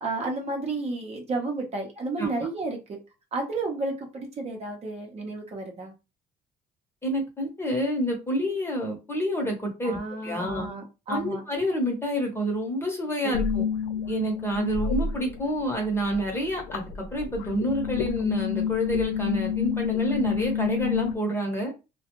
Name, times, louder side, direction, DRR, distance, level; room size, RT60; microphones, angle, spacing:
voice 1, 0.0-3.0 3.3-5.9 9.8-11.4, right 3 dB, 40° right, 0.8 m, -32 dB
voice 2, 7.0-10.7 11.1-13.6 14.1-21.7, equal, 15° left, 1.0 m, -28 dB
sound 1, 13.3-15.7 15.9-21.1, left 7 dB, 90° left, 0.4 m, -28 dB
2.3 x 2.2 x 2.9 m
cardioid pair, 110°, 17 cm